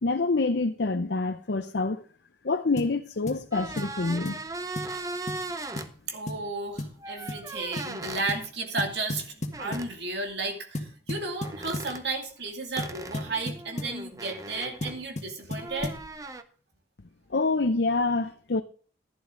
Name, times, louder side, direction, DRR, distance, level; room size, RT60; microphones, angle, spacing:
voice 1, 0.0-2.0 2.4-4.4 17.3-18.6, left 3 dB, 75° left, 0.7 m, -26 dB
sound 1, 2.8-3.0 3.3-3.4 3.8-4.0 4.2-4.4 4.8-5.0 5.3-5.4 5.8-5.9 6.3-6.5 6.8-7.0 7.3-7.5 7.8-7.9 8.3-8.5 8.8-9.9 10.7-11.9 12.8-14.0 14.8-16.1, left 1 dB, 40° left, 1.6 m, -35 dB
sound 2, 3.5-5.9 7.0-8.3 9.5-9.9 11.4-12.0 12.8-15.1 15.6-16.4, right 2 dB, 20° right, 0.7 m, -38 dB
voice 2, 6.1-15.9, right 3 dB, 70° right, 2.5 m, -33 dB
11.5 x 11.5 x 3.8 m
head